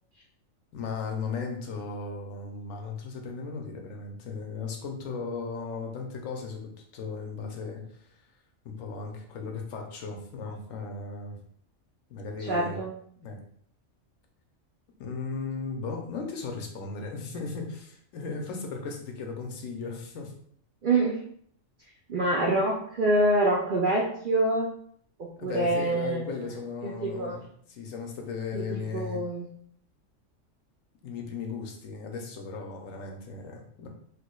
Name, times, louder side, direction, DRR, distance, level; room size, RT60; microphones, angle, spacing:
voice 1, 0.7-7.8 8.6-11.4 12.1-12.8 13.2-13.4 15.0-20.3 25.4-29.2 31.0-33.9, left 4 dB, 85° left, 2 dB, 1.1 m, -36 dB
voice 2, 12.4-12.9 20.8-21.2 22.1-24.7 25.2-26.2 26.8-27.4 28.5-29.5, right 2 dB, 65° right, -2 dB, 0.5 m, -26 dB
4.5 x 2.6 x 2.2 m, 0.62 s
omnidirectional pair, 1.4 m